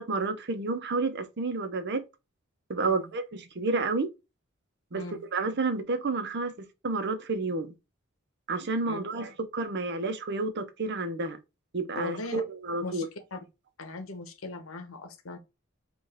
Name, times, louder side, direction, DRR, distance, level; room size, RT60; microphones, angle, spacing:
voice 1, 0.0-2.0 2.7-4.1 4.9-5.0 5.3-7.7 8.5-11.4 11.7-13.1, right 3 dB, 55° right, 0.7 m, -30 dB
voice 2, 4.9-5.2 8.9-9.0 11.9-12.4 12.8-13.1 13.3-13.4 13.8-15.4, left 2 dB, 80° left, 0.9 m, -38 dB
5.4 x 2.5 x 3.4 m
head